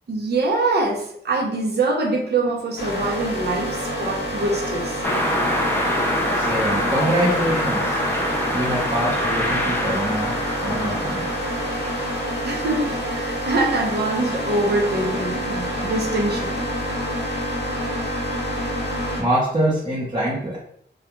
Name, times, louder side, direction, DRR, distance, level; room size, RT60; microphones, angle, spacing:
voice 1, 0.1-5.0 12.4-16.7, right 2 dB, 65° right, -1 dB, 0.7 m, -24 dB
sound 1, 2.8-19.2, equal, 65° left, 0.7 m, -27 dB
sound 2, 5.0-12.7, equal, 10° left, 0.3 m, -25 dB
voice 2, 6.4-8.0 8.5-10.3 10.6-11.2 19.2-20.6, right 1 dB, 25° right, -9 dB, 0.7 m, -24 dB
2.3 x 2.3 x 2.9 m, 0.66 s
wide cardioid pair, 140°, 19 cm